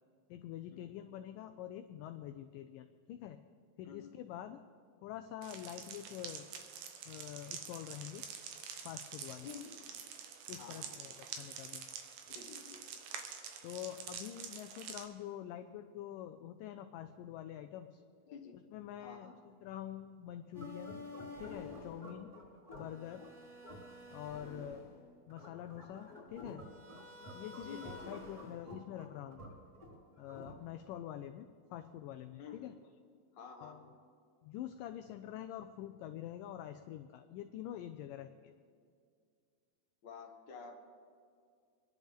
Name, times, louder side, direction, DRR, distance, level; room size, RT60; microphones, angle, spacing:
voice 1, 0.3-3.4 3.8-4.6 5.0-6.5 7.1-8.3 8.8-9.5 10.5-12.0 13.6-18.0 18.7-19.3 19.6-21.0 21.4-22.3 22.7-23.2 24.1-24.8 25.3-26.6 27.3-29.5 30.2-32.7 33.6-33.9 34.4-38.5, left 11 dB, 85° left, 8 dB, 1.9 m, -46 dB
sound 1, 5.4-15.0, right 7 dB, 75° right, 2.7 m, -47 dB
voice 2, 9.4-9.8 10.6-10.9 12.3-12.8 18.3-18.6 19.0-19.4 27.6-28.2 32.4-32.7 33.3-33.8 40.0-40.8, left 6 dB, 70° left, 1 dB, 1.1 m, -50 dB
sound 2, 20.5-30.9, left 2 dB, 20° right, 3.9 m, -49 dB
27.0 x 10.5 x 3.6 m, 2.2 s
omnidirectional pair, 4.4 m